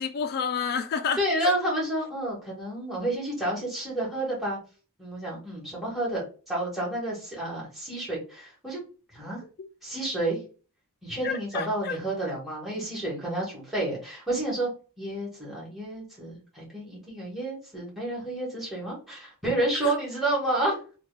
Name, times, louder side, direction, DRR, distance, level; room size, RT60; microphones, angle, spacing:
voice 1, 0.0-1.5 9.6-9.7 11.2-12.0 19.8-19.9, left 6 dB, 45° left, 0.4 m, -30 dB
voice 2, 1.2-4.6 5.0-8.8 9.1-9.4 9.8-10.4 11.0-14.7 15.0-20.8, right 1 dB, ahead, 1.4 m, -30 dB
3.1 x 2.3 x 3.3 m
head